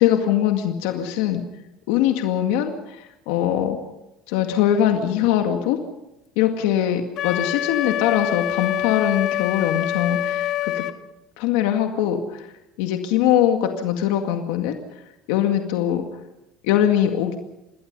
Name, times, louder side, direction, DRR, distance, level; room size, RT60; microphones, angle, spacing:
voice 1, 0.0-1.4 1.9-3.8 4.3-5.8 6.4-10.8 11.4-12.5 12.8-14.8 15.3-16.0 16.6-17.3, left 10 dB, 85° left, 4 dB, 2.1 m, -22 dB
Wind instrument woodwind instrument, 7.2-11.0, left 12 dB, 45° left, 1.1 m, -25 dB
27.5 x 20.5 x 5.5 m, 0.92 s
cardioid pair, 160°, 0 cm